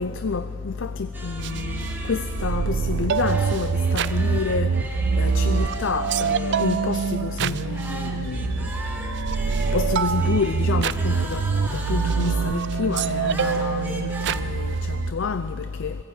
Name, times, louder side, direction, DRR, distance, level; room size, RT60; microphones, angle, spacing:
voice 1, 0.0-16.0, left 4 dB, 60° left, 0.5 m, -28 dB
sound 1, 1.1-14.4, right 2 dB, 10° right, 1.7 m, -39 dB
sound 2, 1.4-15.1, right 5 dB, 55° right, 0.4 m, -25 dB
23.5 x 15.5 x 8.2 m
head